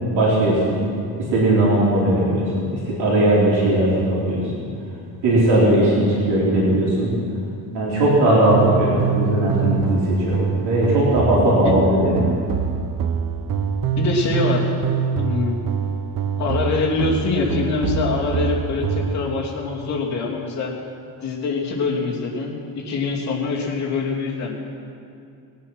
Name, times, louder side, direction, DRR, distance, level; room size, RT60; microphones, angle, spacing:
voice 1, 0.1-0.9 1.3-4.6 5.2-7.1 7.7-12.3, right 1 dB, 75° right, -6 dB, 3.8 m, -18 dB
sound 1, 8.5-19.2, right 6 dB, 55° right, 0.9 m, -25 dB
voice 2, 14.0-14.7 15.1-15.6 16.4-20.7 21.2-22.5 22.8-24.6, left 4 dB, 40° left, -4 dB, 3.0 m, -24 dB
20.5 x 9.3 x 6.2 m, 2.4 s
cardioid pair, 155°, 41 cm